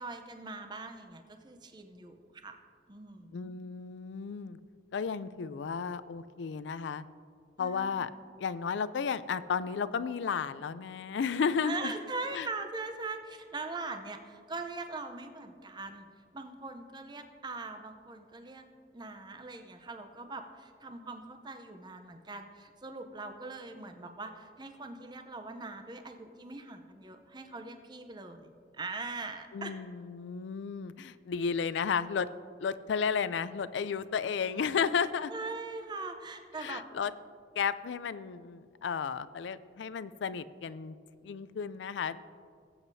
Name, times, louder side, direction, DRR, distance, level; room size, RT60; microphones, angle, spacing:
voice 1, 0.0-2.5 2.9-3.5 7.6-8.1 11.6-16.1 16.3-18.6 18.9-29.7 35.3-36.8, right 3 dB, 25° right, 6 dB, 0.6 m, -41 dB
voice 2, 3.3-4.6 4.9-7.0 7.6-8.1 8.4-11.9 12.3-12.5 29.5-32.3 32.6-35.3 36.6-37.1 37.6-41.0 41.2-42.2, left 6 dB, 85° left, 15 dB, 0.4 m, -33 dB
19.0 x 8.1 x 2.7 m, 2.2 s
head